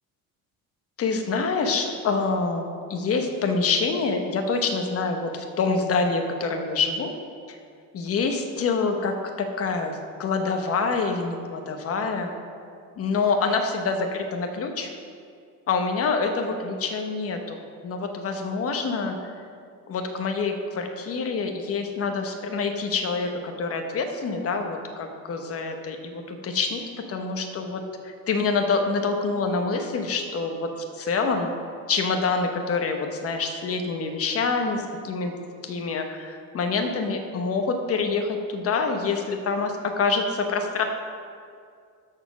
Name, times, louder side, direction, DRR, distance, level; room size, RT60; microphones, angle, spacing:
voice 1, 1.0-7.1 7.5-7.6 7.9-12.3 13.0-14.9 15.7-19.3 19.9-30.7 31.0-31.5 31.9-35.3 35.6-40.8, left 4 dB, 40° left, 4 dB, 1.1 m, -26 dB
13.0 x 4.4 x 6.0 m, 2.3 s
cardioid pair, 140°, 35 cm